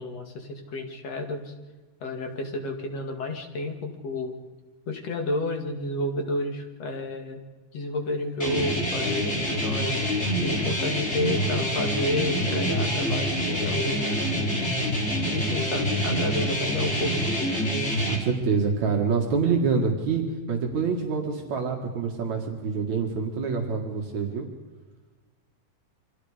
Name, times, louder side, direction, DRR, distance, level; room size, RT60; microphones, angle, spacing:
voice 1, 0.0-1.5 2.0-4.3 4.9-7.4 7.7-10.0 10.4-14.7 15.3-17.2, left 1 dB, 55° left, 4 dB, 3.2 m, -31 dB
sound 1, 8.4-18.2, equal, 20° left, 3.8 m, -26 dB
voice 2, 18.1-24.5, right 5 dB, 60° right, 1 dB, 3.2 m, -26 dB
28.5 x 24.5 x 5.1 m, 1.3 s
omnidirectional pair, 3.7 m